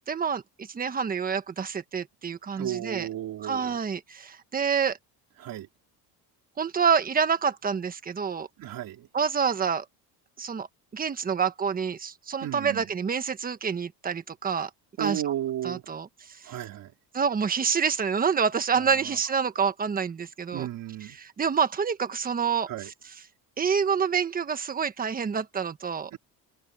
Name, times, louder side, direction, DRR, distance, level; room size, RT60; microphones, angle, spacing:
voice 1, 0.1-3.1 3.4-5.0 6.6-8.5 9.1-9.8 10.4-10.7 10.9-14.7 15.0-15.3 15.6-16.5 17.1-20.7 21.0-22.9 23.6-26.1, right 6 dB, 20° right, 1.3 m, -27 dB
voice 2, 2.5-3.8 5.4-5.7 8.6-9.1 12.4-12.9 15.0-15.8 16.4-16.9 20.5-21.2 22.7-22.9 26.1-26.2, right 12 dB, 55° right, 3.5 m, -33 dB
cardioid pair, 165°, 40 cm